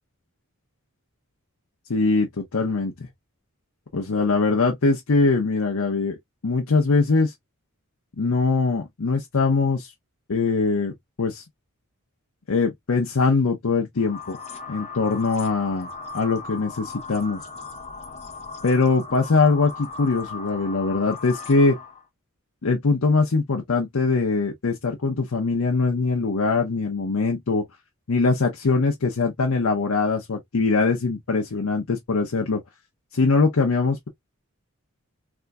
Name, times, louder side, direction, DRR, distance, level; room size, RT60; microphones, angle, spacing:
voice 1, 1.9-2.9 3.9-6.2 6.4-7.3 8.2-9.9 10.3-10.9 11.2-11.4 12.5-14.4 14.7-15.9 16.1-17.4 18.6-21.8 22.6-27.6 28.1-32.6 33.1-34.1, left 4 dB, 70° left, 0.7 m, -22 dB
sound 1, 14.0-22.0, left 4 dB, 30° left, 0.8 m, -38 dB
3.5 x 2.6 x 2.2 m
head